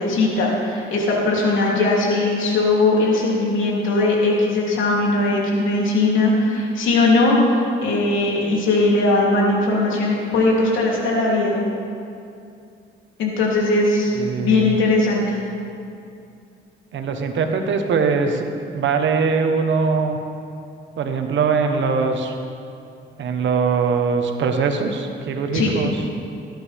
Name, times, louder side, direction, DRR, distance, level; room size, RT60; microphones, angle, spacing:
voice 1, 0.0-7.4 7.8-11.6 13.2-15.3 25.5-25.7, left 2 dB, 80° left, -4 dB, 3.3 m, -19 dB
voice 2, 14.1-14.8 16.9-20.2 21.0-22.4 23.2-25.9, right 5 dB, 70° right, 5 dB, 1.3 m, -21 dB
18.0 x 11.0 x 3.6 m, 2.5 s
cardioid pair, 90°, 20 cm